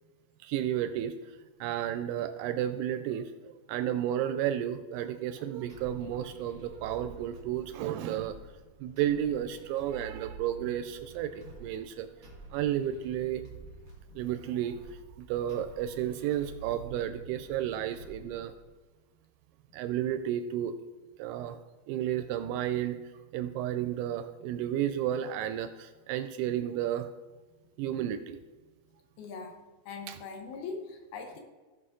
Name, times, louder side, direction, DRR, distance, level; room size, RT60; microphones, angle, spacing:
voice 1, 0.4-1.3 1.6-3.3 3.7-8.4 8.8-12.1 12.5-13.4 14.2-18.5 19.7-20.8 21.2-21.6 21.9-23.0 23.3-27.1 27.8-28.4 30.1-30.2, right 11 dB, 85° right, 9 dB, 2.4 m, -32 dB
sound 1, 5.7-18.7, right 3 dB, 35° right, 1.3 m, -50 dB
voice 2, 29.2-29.6 29.9-31.4, left 4 dB, 70° left, 3 dB, 2.8 m, -41 dB
16.0 x 6.2 x 3.7 m, 1.3 s
omnidirectional pair, 4.8 m